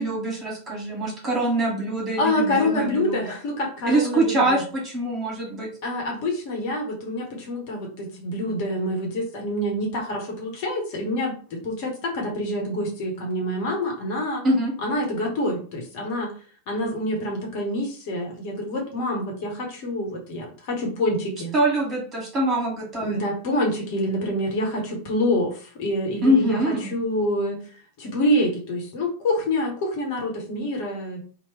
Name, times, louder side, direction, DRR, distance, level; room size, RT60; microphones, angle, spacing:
voice 1, 0.0-3.2 3.8-5.7 14.4-14.7 21.5-23.2 26.2-26.9, right 1 dB, 25° right, -2 dB, 1.6 m, -24 dB
voice 2, 2.2-4.6 5.8-14.4 14.8-16.3 16.7-21.5 23.0-25.5 25.8-27.6 28.0-31.2, left 1 dB, 45° left, 1 dB, 1.1 m, -26 dB
3.0 x 2.2 x 3.4 m, 0.41 s
figure-of-eight pair, 90°, 0 cm